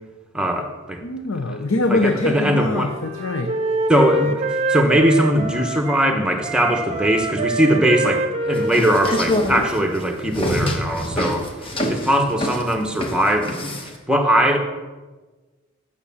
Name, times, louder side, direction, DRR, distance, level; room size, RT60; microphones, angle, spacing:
voice 1, 0.3-1.0 1.9-2.9 3.9-14.6, equal, 5° right, 3 dB, 0.9 m, -20 dB
voice 2, 1.0-3.5, left 2 dB, 85° left, 6 dB, 0.7 m, -23 dB
Wind instrument woodwind instrument, 2.5-6.1 6.4-10.2, right 2 dB, 30° right, 0.8 m, -26 dB
sound 1, 8.6-14.0, left 1 dB, 25° left, 1.1 m, -25 dB
9.0 x 6.0 x 7.1 m, 1.3 s
head